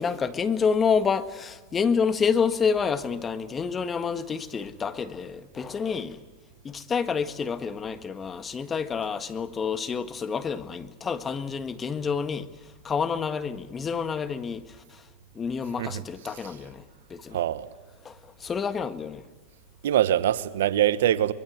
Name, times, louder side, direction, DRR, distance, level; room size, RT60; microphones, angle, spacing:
voice 1, 0.0-6.2 6.6-12.5 12.8-14.6 14.9-15.0 15.4-16.8 17.1-17.4 18.1-19.2, left 6 dB, 25° left, 1.6 m, -28 dB
voice 2, 17.3-17.7 19.8-21.3, right 11 dB, 75° right, 1.1 m, -23 dB
24.0 x 22.0 x 7.9 m
hypercardioid pair, 105°, 0 cm